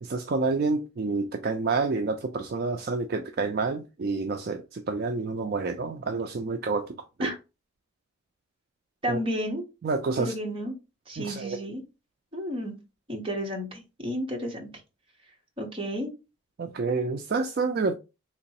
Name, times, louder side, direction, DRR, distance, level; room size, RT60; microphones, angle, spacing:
voice 1, 0.0-7.3 9.1-9.2 9.8-10.3 11.2-11.6 16.6-17.9, right 4 dB, 50° right, 0.3 m, -28 dB
voice 2, 9.0-9.6 10.2-10.7 11.1-11.8 12.3-12.7 13.1-14.7 15.6-16.1, equal, 25° right, 1.0 m, -31 dB
3.8 x 3.0 x 2.8 m
head